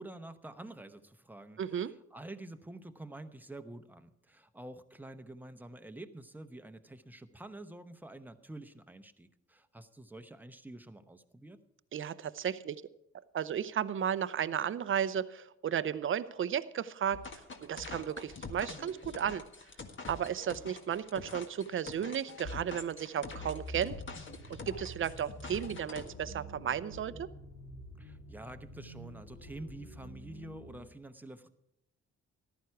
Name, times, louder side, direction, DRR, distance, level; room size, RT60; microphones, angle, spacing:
voice 1, 0.0-11.6 28.0-31.5, right 1 dB, 5° right, 8 dB, 0.9 m, -48 dB
voice 2, 1.6-1.9 11.9-12.8 13.3-17.2 17.6-19.4 20.1-24.2 24.5-27.3, right 9 dB, 45° right, 14 dB, 0.7 m, -34 dB
sound 1, 17.1-26.1, left 3 dB, 40° left, 1.7 m, -45 dB
sound 2, 23.2-30.9, right 1 dB, 65° left, 5.2 m, -48 dB
14.5 x 11.5 x 4.7 m, 0.81 s
cardioid pair, 85°, 30 cm